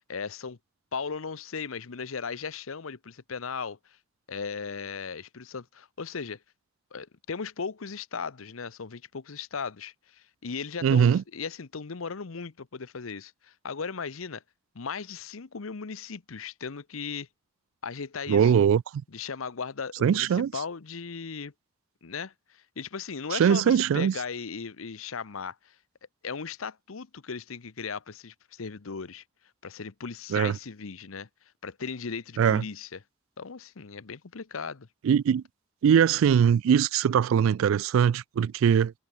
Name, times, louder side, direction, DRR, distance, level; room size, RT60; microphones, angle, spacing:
voice 1, 0.1-0.6 0.9-4.0 4.3-6.4 6.9-14.4 14.7-17.3 17.8-18.5 19.1-21.5 22.0-25.8 26.2-29.2 29.6-31.3 31.6-33.0 33.4-34.9, left 5 dB, 90° left, 0.8 m, -37 dB
voice 2, 10.8-11.2 18.3-18.8 20.0-20.5 23.3-24.1 30.3-30.6 32.4-32.6 35.0-35.4 35.8-38.9, right 8 dB, 75° right, 0.3 m, -21 dB
head